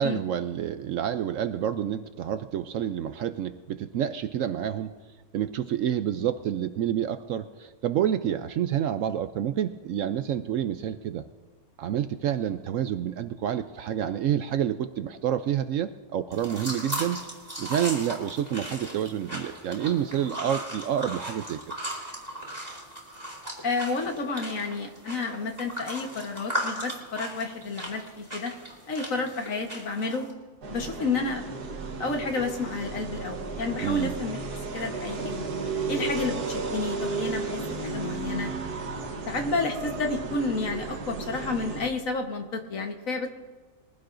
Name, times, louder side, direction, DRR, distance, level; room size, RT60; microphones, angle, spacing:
voice 1, 0.0-4.9 5.3-11.2 11.8-17.2 17.6-21.6 33.8-34.1, right 10 dB, 70° right, 10 dB, 0.8 m, -28 dB
sound 1, 16.3-30.3, right 1 dB, 10° right, 3.7 m, -37 dB
voice 2, 23.6-28.5 28.9-30.3 30.7-31.6 32.0-34.4 34.7-35.5 35.9-38.5 39.3-43.3, left 3 dB, 60° left, 4 dB, 1.6 m, -31 dB
sound 2, 30.6-41.9, right 4 dB, 90° right, 1.7 m, -34 dB
22.0 x 16.0 x 2.6 m, 1.3 s
omnidirectional pair, 1.6 m